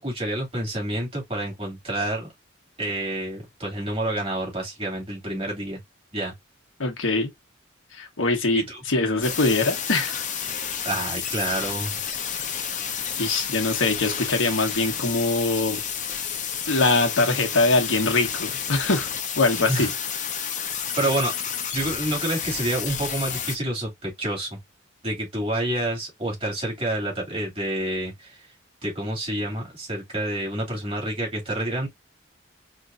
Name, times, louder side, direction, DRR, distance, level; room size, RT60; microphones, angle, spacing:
voice 1, 0.0-2.3 2.8-5.8 6.1-6.3 8.5-8.8 10.8-12.0 19.7-19.9 21.0-21.3 21.7-24.6 25.0-28.4 28.8-31.9, right 1 dB, 30° right, 2.6 m, -28 dB
voice 2, 6.8-7.3 7.9-10.3 13.2-15.9 16.7-19.1 19.4-19.9, left 3 dB, 85° left, 1.2 m, -23 dB
sound 1, 9.2-23.6, left 7 dB, 40° left, 0.8 m, -30 dB
4.5 x 3.2 x 2.6 m
head